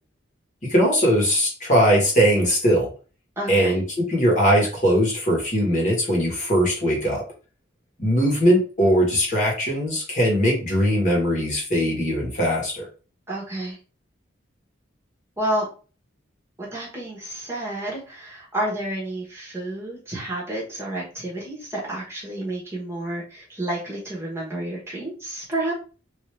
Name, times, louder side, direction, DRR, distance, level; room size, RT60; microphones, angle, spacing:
voice 1, 0.7-2.9 3.5-7.2 8.0-12.9, equal, 40° left, -2 dB, 1.4 m, -20 dB
voice 2, 3.4-3.8 13.3-13.8 15.4-15.6 16.6-25.7, right 1 dB, 15° right, -5 dB, 1.1 m, -30 dB
3.3 x 2.8 x 3.2 m, 0.36 s
head